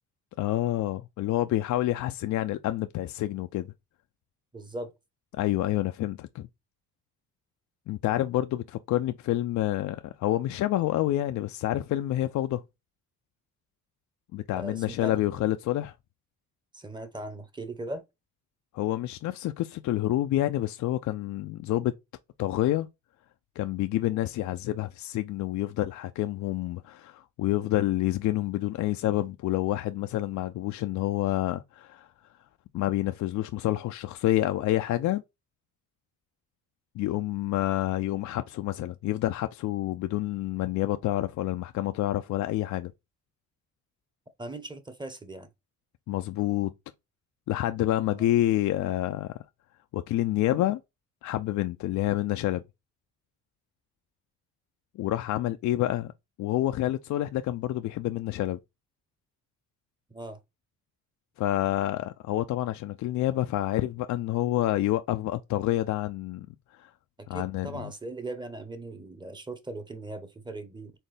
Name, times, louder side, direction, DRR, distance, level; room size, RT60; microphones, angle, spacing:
voice 1, 0.4-3.7 5.3-6.5 7.9-12.6 14.3-15.9 18.7-21.9 22.4-22.9 23.6-32.1 32.7-35.2 37.0-42.9 46.1-46.7 47.5-49.4 49.9-50.8 51.2-52.6 55.0-56.1 56.4-58.6 61.4-66.5 66.8-66.9 67.3-67.9, left 14 dB, 70° left, 0.5 m, -28 dB
voice 2, 4.5-4.9 14.5-15.5 16.7-18.0 44.4-45.5 48.1-48.2 60.1-60.4 67.3-70.9, right 2 dB, 15° right, 1.0 m, -39 dB
4.4 x 3.5 x 3.3 m
cardioid pair, 90°, 30 cm